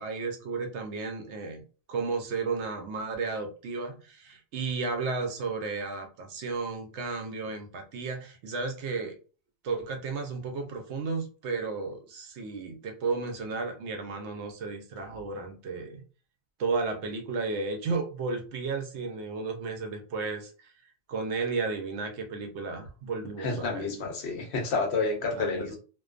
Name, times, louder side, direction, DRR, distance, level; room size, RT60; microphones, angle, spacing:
voice 1, 0.0-1.6 1.9-9.2 9.6-16.0 16.6-20.7 21.1-23.9 25.3-25.8, right 4 dB, 80° right, 4 dB, 0.9 m, -33 dB
voice 2, 23.4-25.8, left 4 dB, 70° left, 2 dB, 0.9 m, -29 dB
2.5 x 2.2 x 2.4 m, 0.37 s
omnidirectional pair, 1.2 m